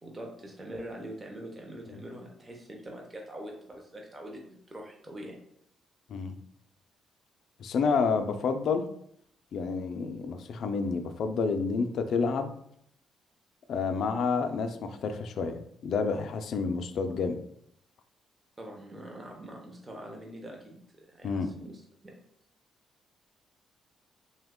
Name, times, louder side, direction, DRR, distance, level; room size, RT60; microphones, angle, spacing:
voice 1, 0.0-5.3 18.6-22.2, right 1 dB, 20° right, 0 dB, 0.5 m, -44 dB
voice 2, 7.6-8.9 9.5-12.5 13.7-17.4 21.2-21.5, left 5 dB, 60° left, 7 dB, 0.3 m, -29 dB
2.8 x 2.1 x 3.5 m, 0.71 s
cardioid pair, 140°, 0 cm